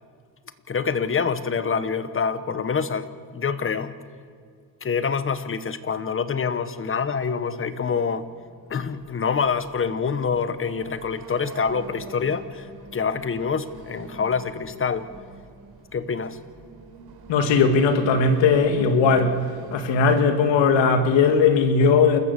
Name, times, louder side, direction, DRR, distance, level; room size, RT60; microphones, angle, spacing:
voice 1, 0.7-3.1 3.3-3.9 4.8-8.3 8.7-15.1 15.9-16.4, left 6 dB, 30° left, 1.2 m, -26 dB
sound 1, 7.8-20.8, right 4 dB, 55° right, 3.7 m, -44 dB
voice 2, 17.3-19.4 19.7-22.2, left 5 dB, 85° left, 2.1 m, -18 dB
28.0 x 14.0 x 6.8 m
cardioid pair, 115°, 43 cm